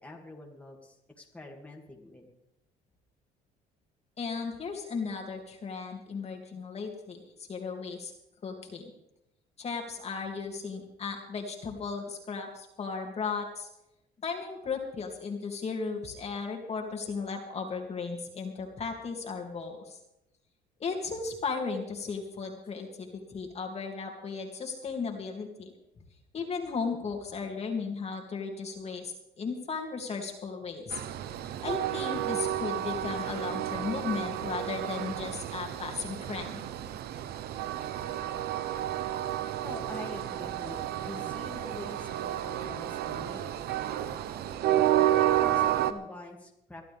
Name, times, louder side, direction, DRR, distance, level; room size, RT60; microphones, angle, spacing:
voice 1, 0.0-2.3 39.6-44.2 45.3-46.8, left 2 dB, 10° left, -1 dB, 2.5 m, -45 dB
voice 2, 4.2-7.2 7.5-8.1 8.4-8.9 9.6-13.7 14.2-20.0 20.8-25.7 26.3-31.0 31.6-36.6, left 5 dB, 40° left, 1 dB, 2.8 m, -35 dB
Train, 30.9-45.9, right 12 dB, 70° right, 0.9 m, -31 dB
22.5 x 12.5 x 3.6 m, 0.83 s
cardioid pair, 110°, 17 cm